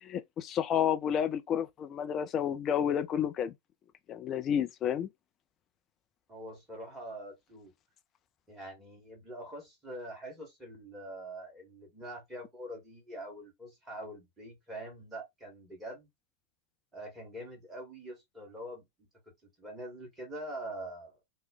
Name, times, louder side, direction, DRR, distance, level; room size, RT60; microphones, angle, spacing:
voice 1, 0.0-3.5 4.1-5.1, left 9 dB, 30° left, 0.4 m, -30 dB
voice 2, 6.3-7.7 8.5-16.1 16.9-18.9 19.6-21.2, right 1 dB, 10° right, 1.7 m, -44 dB
3.0 x 2.2 x 3.7 m
figure-of-eight pair, 90°, 0 cm